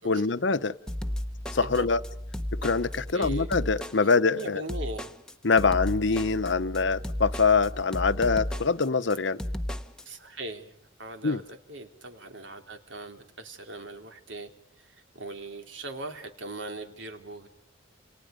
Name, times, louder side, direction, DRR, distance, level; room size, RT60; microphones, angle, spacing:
voice 1, 0.0-0.7 1.5-2.0 2.6-4.6 5.4-9.4 11.2-11.4, left 4 dB, 65° left, 0.9 m, -24 dB
sound 1, 0.9-10.0, equal, 5° left, 1.2 m, -34 dB
voice 2, 2.9-3.5 4.0-4.1 4.3-5.1 10.0-10.7 11.0-17.5, right 2 dB, 70° right, 3.3 m, -40 dB
29.0 x 29.0 x 5.1 m
head